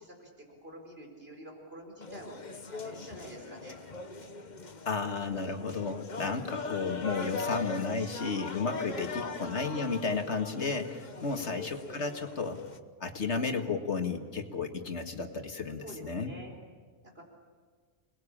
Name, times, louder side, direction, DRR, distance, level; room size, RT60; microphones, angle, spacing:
voice 1, 0.0-3.8 6.4-6.6 8.9-9.4 11.1-11.6 15.8-16.5 17.0-17.2, equal, 60° right, 2 dB, 4.8 m, -47 dB
sound 1, 2.0-12.8, left 4 dB, 40° left, 1.2 m, -41 dB
voice 2, 4.9-12.6 13.0-16.3, left 4 dB, 85° left, 5 dB, 2.2 m, -33 dB
27.5 x 20.5 x 8.7 m, 1.6 s
omnidirectional pair, 1.1 m